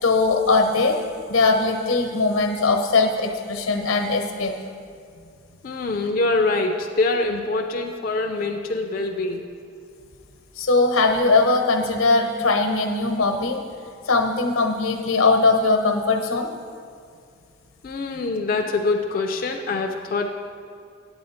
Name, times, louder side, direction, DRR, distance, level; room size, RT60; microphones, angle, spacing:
voice 1, 0.0-1.0 1.3-4.6 10.6-13.6 14.0-16.5, left 3 dB, 90° left, 4 dB, 1.0 m, -20 dB
voice 2, 5.6-9.4 17.8-20.3, left 3 dB, 45° left, 3 dB, 0.4 m, -24 dB
8.7 x 8.6 x 4.2 m, 2.3 s
head